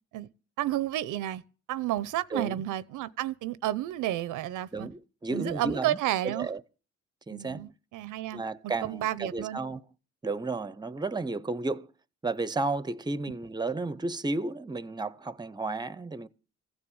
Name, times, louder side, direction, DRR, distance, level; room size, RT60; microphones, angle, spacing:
voice 1, 0.6-1.4 1.7-4.9 5.3-6.5 7.3-8.4 8.8-9.6, right 13 dB, 85° right, 0.8 m, -31 dB
voice 2, 2.3-2.6 4.7-6.0 6.2-6.6 7.3-7.7 8.3-9.8 10.2-11.9 12.2-16.3, right 3 dB, 15° right, 0.8 m, -33 dB
15.5 x 7.1 x 8.8 m
cardioid pair, 90°, 30 cm